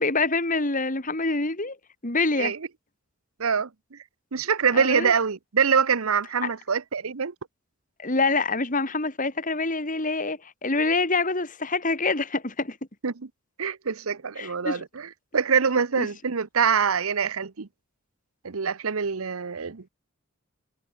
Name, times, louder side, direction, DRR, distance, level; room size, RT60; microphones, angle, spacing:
voice 1, 0.0-1.8 2.0-2.5 4.7-5.1 6.4-6.5 8.0-12.8 14.4-14.8 16.0-16.1, left 3 dB, 40° left, 2.6 m, -26 dB
voice 2, 3.4-4.0 4.3-7.3 13.0-13.1 13.6-17.7 18.4-19.8, right 6 dB, 75° right, 0.8 m, -25 dB
head